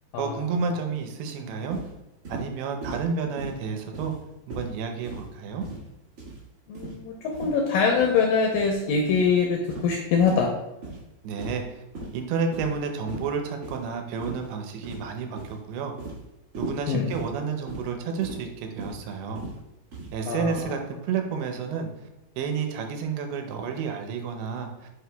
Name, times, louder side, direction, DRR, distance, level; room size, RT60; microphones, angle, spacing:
voice 1, 0.2-1.8 2.3-4.1 4.5-5.7 11.2-11.8 12.1-15.9 16.6-19.4 20.1-21.9 22.4-24.7, right 5 dB, 80° right, 4 dB, 2.7 m, -30 dB
sound 1, 1.7-1.9 2.2-2.5 2.8-3.0 3.4-3.6 3.9-4.2 4.5-4.7 5.0-5.3 5.6-5.9 6.2-6.4 6.7-7.0 7.3-7.5 7.9-8.1 8.5-8.7 9.1-9.3 9.7-9.9 10.2-10.5 10.8-11.0 11.4-11.7 11.9-12.1 12.5-12.8 13.1-13.3 13.6-13.8 14.2-14.5 14.8-15.1 15.4-15.6 16.0-16.2 16.5-16.8 17.1-17.3 17.7-17.9 18.2-18.4 18.8-19.0 19.3-19.6 19.9-20.1 20.5-20.7, right 2 dB, 50° right, 1.8 m, -37 dB
voice 2, 6.7-10.5 16.9-17.0 20.3-20.6, left 5 dB, 80° left, 1 dB, 2.0 m, -23 dB
6.0 x 4.8 x 3.4 m, 0.95 s
omnidirectional pair, 4.6 m